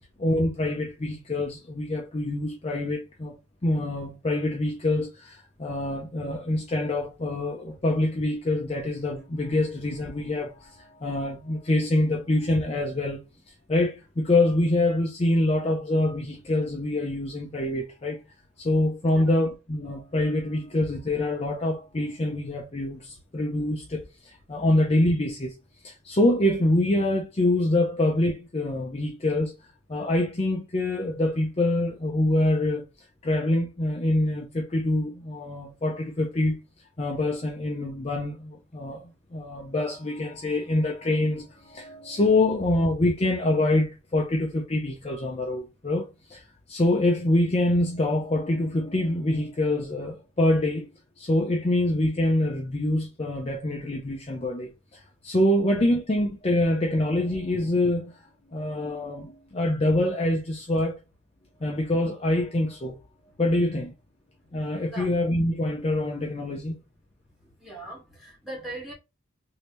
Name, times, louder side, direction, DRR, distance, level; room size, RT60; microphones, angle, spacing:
voice 1, 0.2-3.4 3.6-18.2 18.6-25.5 25.8-29.6 29.9-32.9 33.2-36.6 37.0-39.0 39.3-50.9 51.2-58.2 58.5-61.0 61.6-63.0 63.4-63.9 64.5-66.8, left 1 dB, 30° left, 0.5 m, -25 dB
voice 2, 67.6-68.9, right 1 dB, ahead, 1.6 m, -39 dB
3.3 x 2.7 x 2.9 m
head